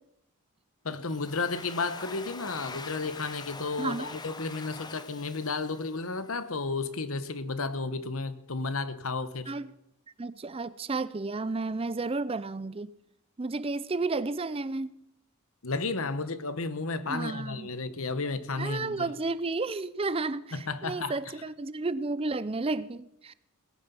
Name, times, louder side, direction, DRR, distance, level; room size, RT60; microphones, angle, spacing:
voice 1, 0.8-9.5 15.6-19.0 20.5-21.2, left 3 dB, 70° left, 1.2 m, -33 dB
Domestic sounds home sounds, 0.9-6.5, left 4 dB, 20° left, 0.8 m, -44 dB
voice 2, 3.8-4.1 9.5-9.7 10.2-12.9 13.4-14.9 17.1-17.7 18.6-23.3, right 3 dB, 25° right, 0.5 m, -32 dB
18.5 x 10.0 x 7.0 m
head